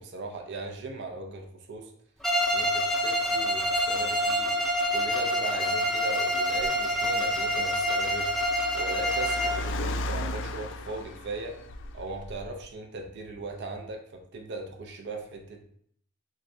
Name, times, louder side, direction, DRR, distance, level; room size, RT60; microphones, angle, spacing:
voice 1, 0.0-1.9 2.5-4.6 4.9-8.3 8.7-11.6 11.9-15.8, right 2 dB, 55° right, 3 dB, 0.6 m, -38 dB
Bowed string instrument, 2.2-9.7, equal, ahead, 0.5 m, -27 dB
Car, 4.7-12.7, left 1 dB, 60° left, 0.3 m, -38 dB
6.2 x 2.2 x 2.6 m, 0.64 s
head